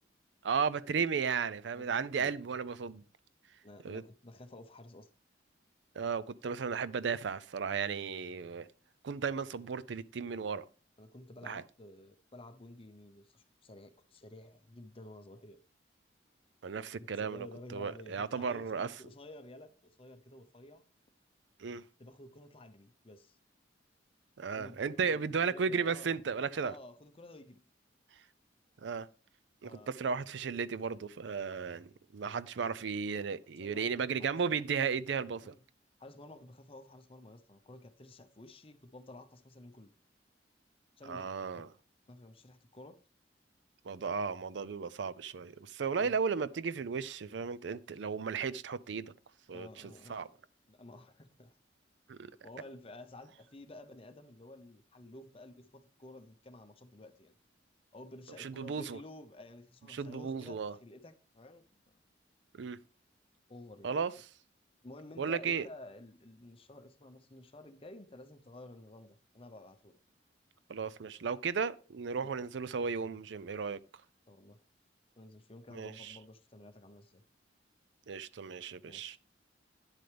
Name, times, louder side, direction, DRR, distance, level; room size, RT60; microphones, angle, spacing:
voice 1, 0.4-3.0 3.8-4.0 6.0-8.7 9.0-10.7 11.5-11.6 16.6-18.9 21.6-21.8 24.4-26.7 28.8-29.1 29.6-35.5 41.1-41.7 43.9-49.1 49.5-49.7 50.1-50.3 52.1-52.3 58.4-59.0 59.9-60.7 62.5-62.8 63.8-64.1 65.2-65.7 70.7-73.8 75.7-76.2 78.1-79.2, right 5 dB, 70° right, 0.5 m, -35 dB
voice 2, 1.7-2.6 3.6-5.1 11.0-15.6 17.0-19.7 20.0-20.9 22.0-23.4 24.6-26.2 26.6-27.7 29.6-29.9 33.6-34.7 35.4-35.6 36.0-39.9 41.0-41.2 42.1-43.0 46.0-46.2 49.5-50.3 50.7-51.6 52.4-57.4 57.9-62.0 63.5-64.0 64.8-70.0 74.3-74.6 75.2-77.2 78.8-79.2, left 1 dB, 30° left, 0.8 m, -52 dB
9.8 x 7.7 x 3.4 m
head